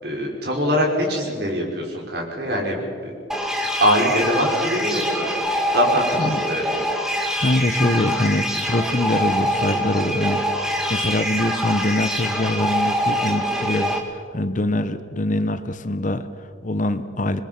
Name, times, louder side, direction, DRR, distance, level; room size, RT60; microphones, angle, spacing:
voice 1, 0.0-2.8 3.0-3.1 3.8-5.3 5.7-6.6, equal, 55° right, -1 dB, 5.5 m, -22 dB
sound 1, 3.3-14.0, equal, ahead, 2.2 m, -24 dB
voice 2, 7.4-10.4 10.9-17.4, left 1 dB, 40° left, 11 dB, 0.9 m, -23 dB
27.5 x 21.5 x 6.0 m, 2.1 s
head